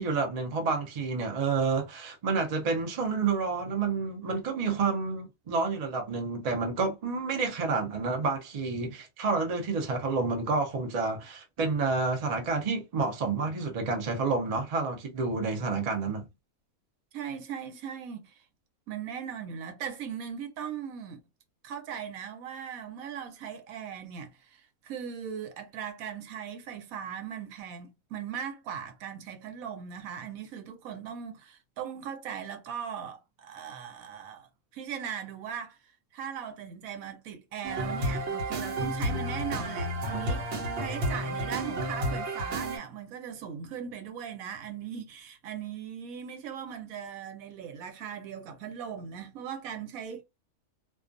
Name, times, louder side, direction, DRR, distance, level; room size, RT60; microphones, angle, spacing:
voice 1, 0.0-16.3, right 4 dB, 45° right, 0.5 m, -29 dB
voice 2, 17.1-18.4 18.9-21.2 21.6-34.5 34.7-35.8 36.1-40.4 40.8-50.2, right 8 dB, 90° right, 1.1 m, -39 dB
sound 1, 37.6-42.8, right 1 dB, 60° right, 1.0 m, -31 dB
2.4 x 2.3 x 2.5 m
omnidirectional pair, 1.4 m